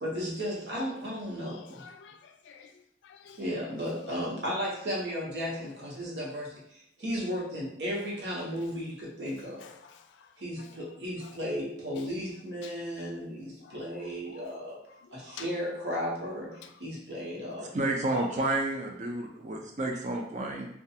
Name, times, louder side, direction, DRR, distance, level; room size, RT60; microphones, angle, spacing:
voice 1, 0.0-1.8 3.4-6.6 7.0-9.6 10.4-14.8 15.1-17.7 18.1-18.3, equal, 70° right, 0.9 m, -35 dB
voice 2, 1.4-2.7 3.0-3.4 9.6-9.9 10.6-10.7 11.2-11.3 12.6-12.7 13.6-13.8 15.2-15.5 16.6-16.7, left 7 dB, 90° left, 0.3 m, -49 dB
voice 3, 17.7-20.7, right 2 dB, 40° right, 0.4 m, -30 dB
2.4 x 2.3 x 2.7 m
head